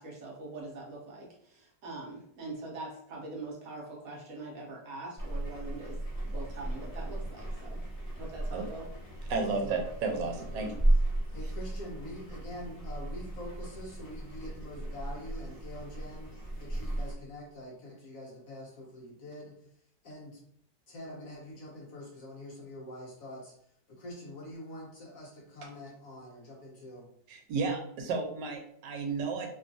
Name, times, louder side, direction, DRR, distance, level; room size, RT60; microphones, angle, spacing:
voice 1, 0.0-6.0 6.2-7.8 8.2-8.8, right 2 dB, 65° right, -2 dB, 1.0 m, -43 dB
sound 1, 5.2-17.1, right 1 dB, 40° left, 0.5 m, -34 dB
voice 2, 9.3-10.8 27.3-29.5, right 4 dB, 85° right, 2 dB, 1.2 m, -32 dB
voice 3, 10.2-10.7 11.3-19.5 20.0-20.4 20.9-23.5 23.9-27.1, left 1 dB, 65° left, -2 dB, 0.9 m, -45 dB
3.0 x 2.3 x 2.5 m, 0.68 s
omnidirectional pair, 1.9 m